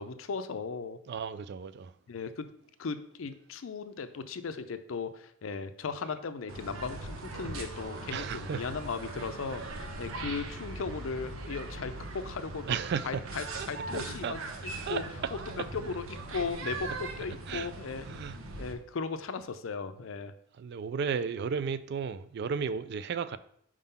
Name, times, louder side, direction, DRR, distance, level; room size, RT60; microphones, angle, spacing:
voice 1, 0.0-1.0 2.1-2.5 2.8-12.8 13.0-15.0 15.3-18.1 18.6-20.3, left 4 dB, 75° left, 0.5 m, -37 dB
voice 2, 1.1-1.9 8.1-8.6 12.7-13.2 13.5-15.6 17.5-17.7 18.1-18.4 20.6-23.4, right 6 dB, 55° right, 0.3 m, -34 dB
sound 1, 6.5-18.7, right 2 dB, 90° right, 0.9 m, -40 dB
4.8 x 3.7 x 5.5 m
head